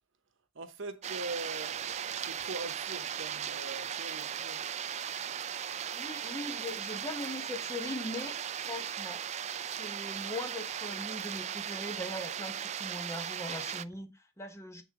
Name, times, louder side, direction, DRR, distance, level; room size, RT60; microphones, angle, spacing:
voice 1, 0.5-4.6, right 3 dB, 65° right, 1.0 m, -42 dB
sound 1, 1.0-13.8, right 9 dB, 35° right, 0.3 m, -37 dB
voice 2, 5.9-9.3 9.6-14.8, left 1 dB, 15° left, 1.1 m, -40 dB
8.9 x 3.9 x 4.9 m
head